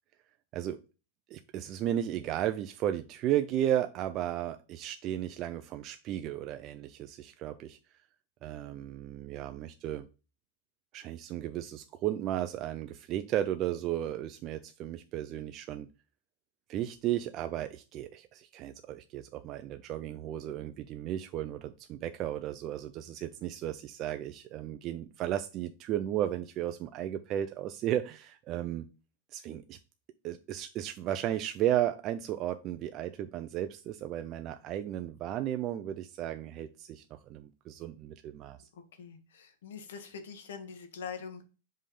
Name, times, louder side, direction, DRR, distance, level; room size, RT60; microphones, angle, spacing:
voice 1, 1.3-7.8 8.4-10.1 10.9-15.9 16.7-28.8 29.3-29.8 30.2-38.6, right 12 dB, 35° right, 0.4 m, -34 dB
voice 2, 38.7-41.4, left 6 dB, 90° left, 1.4 m, -44 dB
5.4 x 3.3 x 5.4 m
supercardioid pair, 155°, 0 cm